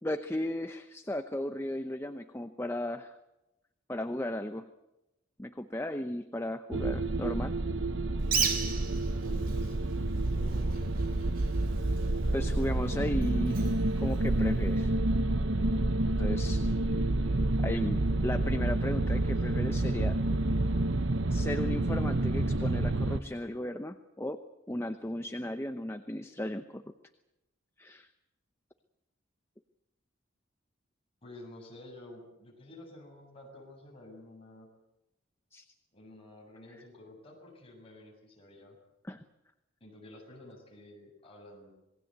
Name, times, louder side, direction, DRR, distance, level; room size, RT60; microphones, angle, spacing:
voice 1, 0.0-3.1 3.9-4.7 5.4-7.5 12.3-14.9 16.2-16.6 17.6-20.1 21.3-24.4 24.7-26.8 27.8-28.1 35.5-35.6 39.0-39.2, left 1 dB, 10° left, 8 dB, 0.8 m, -35 dB
Scary WIndows XP shutdown, 6.7-23.2, right 2 dB, 65° right, 1.0 m, -29 dB
Bird, 8.2-14.9, right 6 dB, 45° right, 2.9 m, -37 dB
voice 2, 8.9-9.8 10.2-11.2 19.2-19.4 19.8-20.2 31.2-34.7 35.9-38.8 39.8-41.7, left 1 dB, 30° left, 0 dB, 7.7 m, -51 dB
27.0 x 20.0 x 8.1 m, 0.93 s
head